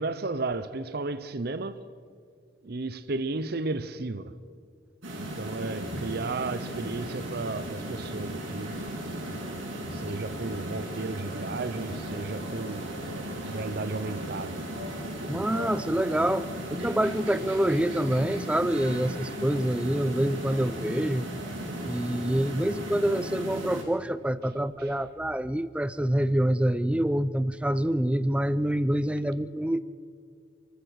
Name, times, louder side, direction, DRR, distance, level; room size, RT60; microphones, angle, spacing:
voice 1, 0.0-1.8 2.6-4.3 5.1-8.8 9.9-12.9 13.5-14.7 24.8-24.9, right 3 dB, 50° right, 0.7 m, -33 dB
sound 1, 5.0-23.8, right 1 dB, 85° right, 7.2 m, -36 dB
voice 2, 15.3-21.3 21.8-29.8, right 1 dB, 5° right, 0.4 m, -26 dB
28.0 x 15.0 x 6.4 m
head